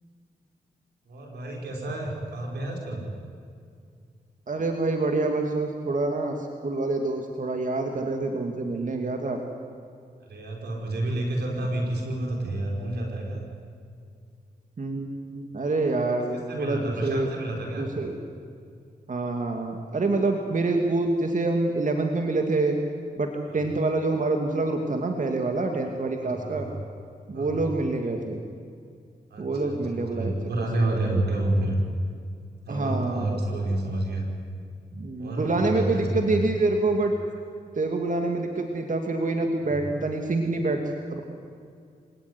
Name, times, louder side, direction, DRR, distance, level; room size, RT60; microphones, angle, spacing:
voice 1, 1.1-3.0 10.3-13.4 16.3-17.9 23.5-23.6 26.2-26.8 27.3-27.7 29.3-31.8 32.7-34.3 35.2-36.4 39.6-39.7, right 1 dB, 85° right, 1 dB, 5.3 m, -29 dB
voice 2, 4.5-9.4 14.8-17.3 17.8-18.2 19.1-22.8 23.2-26.7 27.3-28.4 29.4-30.3 30.8-31.3 32.7-33.6 34.9-37.1 37.8-40.8 41.1-41.2, right 2 dB, 50° right, 3 dB, 2.7 m, -26 dB
26.0 x 18.0 x 9.8 m, 2.3 s
cardioid pair, 55°, 17 cm